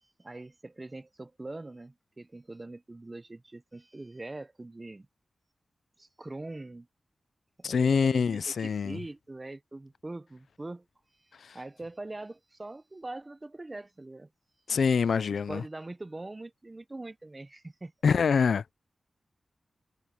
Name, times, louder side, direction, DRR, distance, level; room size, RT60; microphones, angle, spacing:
voice 1, 0.0-5.1 6.0-6.9 7.6-10.9 11.5-14.3 15.3-17.9, right 2 dB, 25° right, 0.6 m, -43 dB
voice 2, 7.6-9.0 11.4-11.6 14.7-15.6 18.0-18.6, left 6 dB, 85° left, 0.4 m, -25 dB
wide cardioid pair, 125°, 0 cm